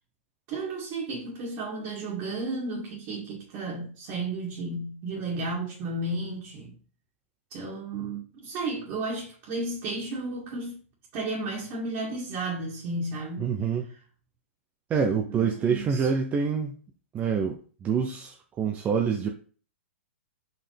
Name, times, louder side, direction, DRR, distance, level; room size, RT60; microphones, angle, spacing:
voice 1, 0.5-6.7 7.5-10.8 11.1-13.5 15.3-16.1, right 2 dB, 40° right, 2.3 m, -33 dB
voice 2, 13.4-13.9 14.9-16.7 17.1-19.3, right 6 dB, 20° right, 0.7 m, -26 dB
5.6 x 5.3 x 3.4 m
hypercardioid pair, 130°, 7 cm